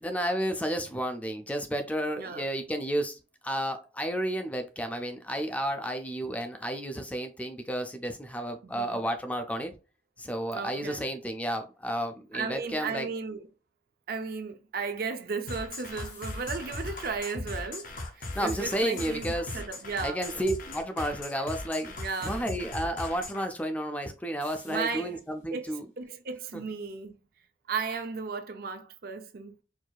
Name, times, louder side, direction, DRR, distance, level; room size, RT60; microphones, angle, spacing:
voice 1, 0.0-3.2 3.4-9.8 10.2-13.1 18.2-19.6 20.0-21.9 22.2-25.8 26.5-26.6, equal, 10° left, 0.4 m, -32 dB
voice 2, 2.2-2.5 8.6-9.0 10.5-11.0 12.3-13.5 14.1-17.9 18.4-20.3 22.0-22.4 24.7-25.2 25.5-27.2 27.7-29.6, right 5 dB, 55° right, 0.5 m, -35 dB
sound 1, 15.5-23.5, left 2 dB, 50° left, 0.8 m, -38 dB
sound 2, 16.0-16.8 18.3-19.8 22.1-22.9 24.4-25.4, left 4 dB, 90° left, 2.0 m, -54 dB
4.5 x 2.6 x 2.3 m
head